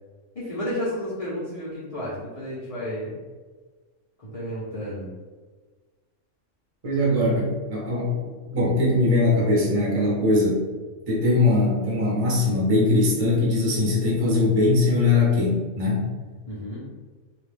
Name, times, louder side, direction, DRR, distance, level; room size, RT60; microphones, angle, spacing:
voice 1, 0.3-3.2 4.2-5.1 16.5-16.9, equal, 35° left, -10 dB, 0.6 m, -32 dB
voice 2, 6.8-10.6 11.1-16.1, left 2 dB, 35° right, -5 dB, 0.7 m, -21 dB
2.4 x 2.2 x 3.3 m, 1.4 s
omnidirectional pair, 1.3 m